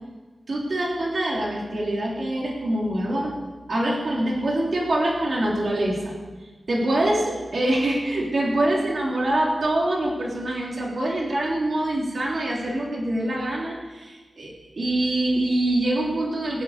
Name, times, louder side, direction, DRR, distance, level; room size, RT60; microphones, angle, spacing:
voice 1, 0.5-3.3 3.7-6.2 6.7-16.6, right 1 dB, 60° right, -2 dB, 3.5 m, -24 dB
17.5 x 8.4 x 6.8 m, 1.3 s
wide cardioid pair, 90°, 0 cm